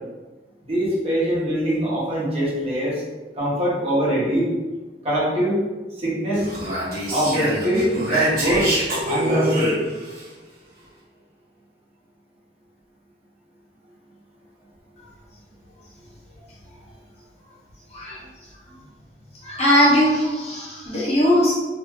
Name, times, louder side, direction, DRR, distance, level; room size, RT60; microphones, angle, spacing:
voice 1, 0.6-3.0 3.4-4.5 5.0-5.6 6.0-6.5 7.1-8.7 9.0-9.7, equal, 35° right, -7 dB, 0.9 m, -22 dB
Speech, 6.3-10.2, right 1 dB, 60° right, 1.0 m, -25 dB
voice 2, 19.4-21.5, equal, 40° left, -6 dB, 0.9 m, -19 dB
2.6 x 2.3 x 3.2 m, 1.2 s
head